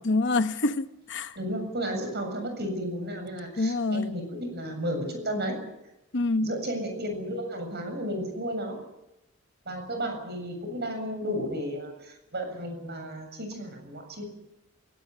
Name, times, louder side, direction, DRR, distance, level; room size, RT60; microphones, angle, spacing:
voice 1, 0.1-1.3 3.6-4.1 6.1-6.5, left 2 dB, 55° left, 1.0 m, -26 dB
voice 2, 1.3-5.6 6.4-8.8 9.7-14.3, equal, 50° right, 7.5 m, -33 dB
21.5 x 18.5 x 9.3 m
head